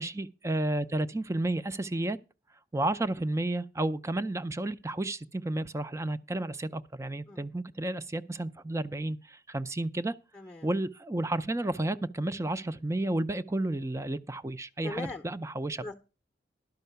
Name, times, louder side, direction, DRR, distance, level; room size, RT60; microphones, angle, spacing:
voice 1, 0.0-2.2 2.7-10.1 10.6-15.8, right 2 dB, 15° right, 0.5 m, -32 dB
voice 2, 10.3-10.7 14.8-15.2 15.8-16.0, left 2 dB, 15° left, 0.8 m, -40 dB
12.0 x 5.5 x 6.8 m
head